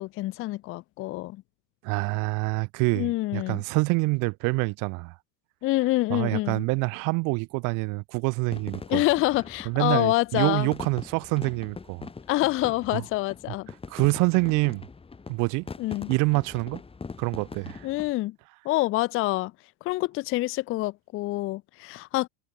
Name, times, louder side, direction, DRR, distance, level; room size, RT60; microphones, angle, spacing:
voice 1, 0.0-1.4 2.9-3.6 5.6-6.7 8.9-10.7 12.3-13.7 15.8-16.1 17.8-18.4 18.6-19.5 19.8-22.3, left 19 dB, 35° left, 0.5 m, -26 dB
voice 2, 1.8-5.1 6.1-9.0 9.7-12.1 12.9-13.0 13.9-14.8 15.3-15.7 16.1-16.8 17.2-17.9, right 29 dB, 50° right, 0.6 m, -26 dB
sound 1, 8.5-18.1, left 4 dB, 15° left, 2.3 m, -42 dB
supercardioid pair, 125°, 40 cm